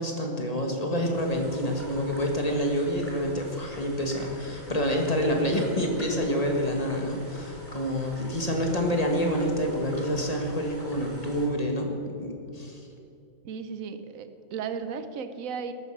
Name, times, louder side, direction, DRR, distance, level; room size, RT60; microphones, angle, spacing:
voice 1, 0.0-12.9, equal, 30° left, 2 dB, 1.8 m, -27 dB
sound 1, 1.1-11.5, equal, 10° left, 2.5 m, -44 dB
voice 2, 13.4-15.7, right 6 dB, 80° right, 10 dB, 1.2 m, -35 dB
13.5 x 9.4 x 6.0 m, 2.8 s
omnidirectional pair, 1.4 m